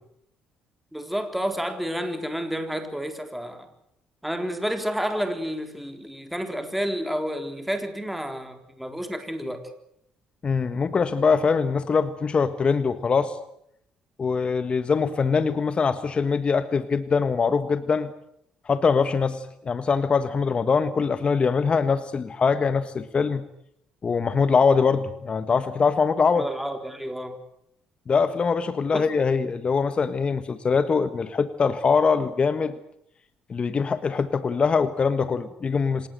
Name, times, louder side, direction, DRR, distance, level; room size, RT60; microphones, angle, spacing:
voice 1, 0.9-3.7 4.2-9.7 26.4-27.4 28.9-29.1, equal, 5° right, 6 dB, 4.0 m, -30 dB
voice 2, 10.4-13.4 14.2-18.1 18.6-23.4 24.0-26.4 28.1-32.7 33.5-36.1, left 5 dB, 40° left, 11 dB, 1.6 m, -23 dB
26.0 x 19.5 x 8.0 m, 0.74 s
supercardioid pair, 80°, 3 cm